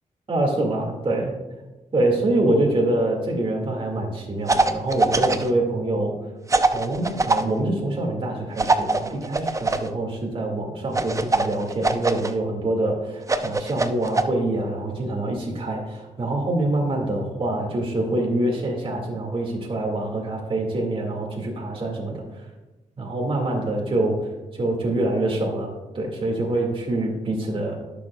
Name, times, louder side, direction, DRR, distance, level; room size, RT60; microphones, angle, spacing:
voice 1, 0.3-1.3 1.9-6.1 6.7-22.5 23.0-24.2 24.5-25.7 25.9-27.8, right 2 dB, 40° right, -1 dB, 2.2 m, -25 dB
sound 1, 4.5-5.5 6.5-7.4 8.6-9.9 10.9-12.3 13.2-14.2, right 3 dB, 25° right, 0.6 m, -22 dB
18.0 x 6.9 x 2.4 m, 1.1 s
cardioid pair, 75°, 14 cm